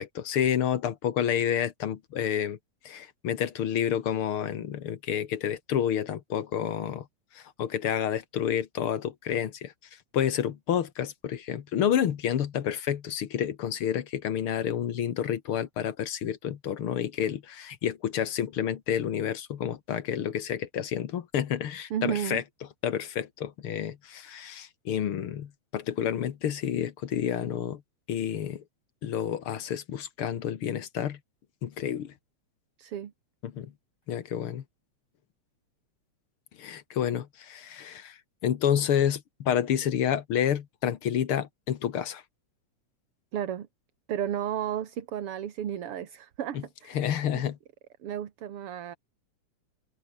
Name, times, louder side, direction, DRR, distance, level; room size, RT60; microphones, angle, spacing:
voice 1, 0.0-2.6 2.9-7.1 7.4-9.7 10.1-22.4 22.8-27.8 28.1-28.6 29.0-31.2 31.6-32.1 33.4-33.7 34.1-34.6 36.6-38.2 38.4-42.2 46.9-47.6, left 9 dB, 55° left, 1.9 m, -29 dB
voice 2, 21.9-22.4 32.8-33.1 43.3-43.7 44.1-47.1 47.3-47.4 48.0-49.0, right 10 dB, 55° right, 2.3 m, -33 dB
open air
omnidirectional pair, 3.3 m